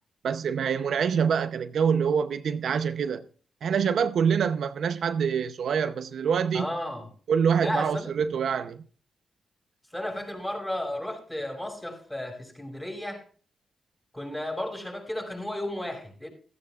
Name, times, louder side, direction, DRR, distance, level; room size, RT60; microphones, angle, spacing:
voice 1, 0.2-3.2 3.6-6.7 7.3-8.8, right 7 dB, 75° right, 0.7 m, -25 dB
voice 2, 6.5-7.1 7.6-8.1 9.9-13.2 14.1-16.3, left 1 dB, 10° left, 5.6 m, -33 dB
15.5 x 14.0 x 2.4 m
cardioid pair, 75°, 0 cm